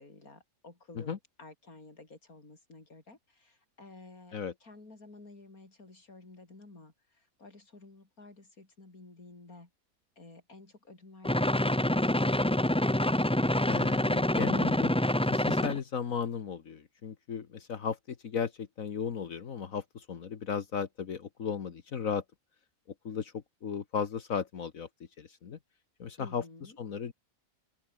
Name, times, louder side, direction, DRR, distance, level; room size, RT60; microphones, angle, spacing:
voice 1, 0.0-9.7 10.2-12.6 26.2-26.8, left 3 dB, 85° left, 5.0 m, -53 dB
sound 1, 11.2-15.8, left 1 dB, 5° left, 0.4 m, -26 dB
voice 2, 13.7-14.9 15.3-22.2 23.1-24.9 25.2-25.6 26.0-27.1, left 7 dB, 70° left, 1.8 m, -35 dB
open air
omnidirectional pair, 1.5 m